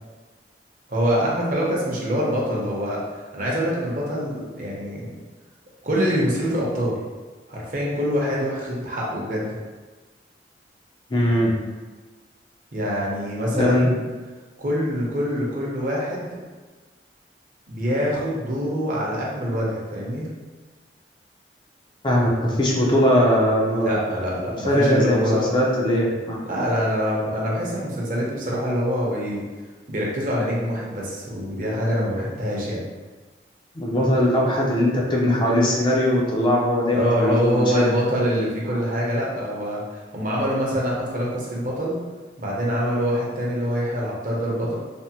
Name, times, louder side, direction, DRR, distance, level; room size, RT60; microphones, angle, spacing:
voice 1, 0.9-3.0 3.3-5.1 5.8-7.0 7.5-9.5 12.7-14.0 14.6-16.4 17.7-20.3 23.8-25.5 26.4-29.5 29.9-32.8 36.9-42.0 42.4-44.8, equal, 50° right, -4 dB, 0.7 m, -25 dB
voice 2, 11.1-11.5 13.5-13.9 22.0-24.0 24.7-26.4 33.8-37.8, left 1 dB, 25° left, -3 dB, 0.4 m, -20 dB
3.4 x 2.0 x 2.8 m, 1.3 s
head